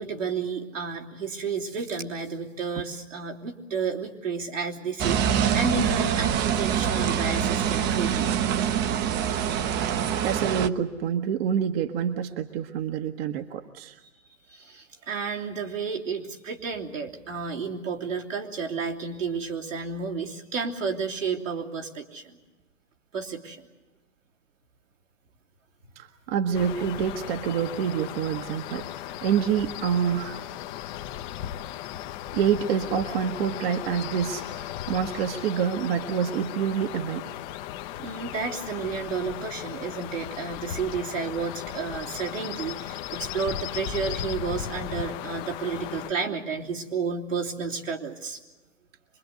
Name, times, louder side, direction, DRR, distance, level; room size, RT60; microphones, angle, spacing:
voice 1, 0.0-8.3 14.5-22.4 23.1-23.6 38.0-48.4, right 5 dB, 85° right, -1 dB, 3.2 m, -31 dB
sound 1, 5.0-10.7, right 8 dB, 25° right, 0.9 m, -25 dB
voice 2, 9.9-14.0 26.0-30.5 32.3-37.3, right 8 dB, 50° right, 6 dB, 1.3 m, -27 dB
sound 2, 26.5-46.1, left 12 dB, 40° left, 0.9 m, -36 dB
25.0 x 22.0 x 8.1 m, 1.2 s
hypercardioid pair, 115°, 37 cm